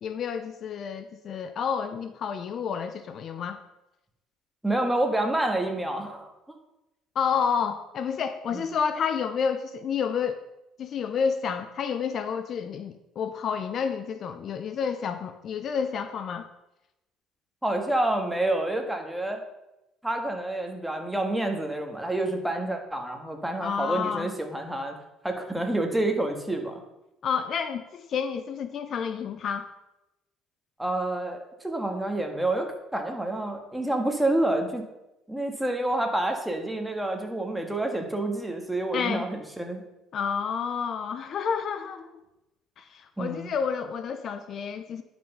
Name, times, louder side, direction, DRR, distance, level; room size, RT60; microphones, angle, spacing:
voice 1, 0.0-3.6 7.2-10.4 10.8-16.5 23.6-24.3 27.2-29.7 38.9-39.3 40.1-42.1 42.8-45.0, left 6 dB, 50° left, 10 dB, 0.6 m, -30 dB
voice 2, 4.6-6.3 8.5-8.6 17.6-19.4 20.0-25.0 25.2-26.8 30.8-34.8 35.3-39.8 43.2-43.5, right 1 dB, 5° right, 3 dB, 1.7 m, -28 dB
10.5 x 6.0 x 5.4 m, 0.93 s
cardioid pair, 110°, 0 cm